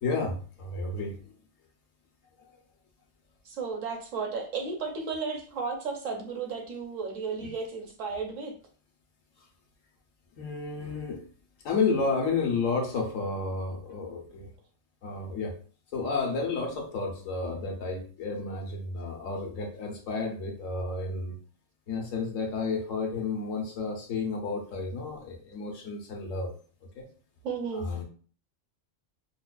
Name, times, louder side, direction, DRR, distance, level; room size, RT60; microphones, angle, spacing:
voice 1, 0.0-1.3 7.4-7.5 10.4-11.2 11.6-14.5 15.0-15.5 15.9-21.4 21.9-26.5 26.9-27.1 27.7-28.0, left 4 dB, 85° left, 2 dB, 1.2 m, -31 dB
voice 2, 3.4-8.5 27.4-27.9, right 5 dB, 80° right, 3 dB, 1.2 m, -34 dB
5.1 x 2.4 x 2.2 m, 0.41 s
omnidirectional pair, 1.3 m